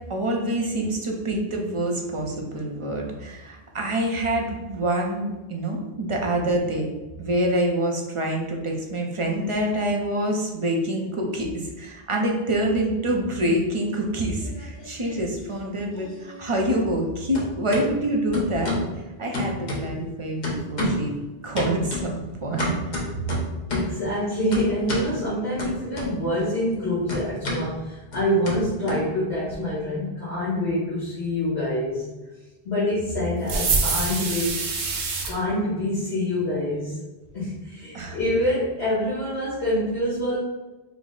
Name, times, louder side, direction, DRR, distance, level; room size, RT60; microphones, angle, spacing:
voice 1, 0.1-6.9 7.2-21.1 21.4-23.0 37.9-38.2, right 1 dB, 40° right, 0 dB, 0.5 m, -26 dB
sound 1, 14.4-15.2 15.5-17.1 17.3-17.9 18.3-18.9 19.3-20.1 20.4-21.1 21.6-24.0 24.5-25.1 25.6-26.4 26.7-29.5, left 1 dB, 45° left, 0.9 m, -30 dB
voice 2, 23.7-32.1 32.6-34.6 35.3-37.0 37.3-40.4, left 1 dB, 75° left, -10 dB, 1.6 m, -26 dB
sound 2, 33.5-35.3, right 4 dB, 85° right, 1.0 m, -25 dB
4.6 x 2.1 x 3.8 m, 1.1 s
omnidirectional pair, 1.1 m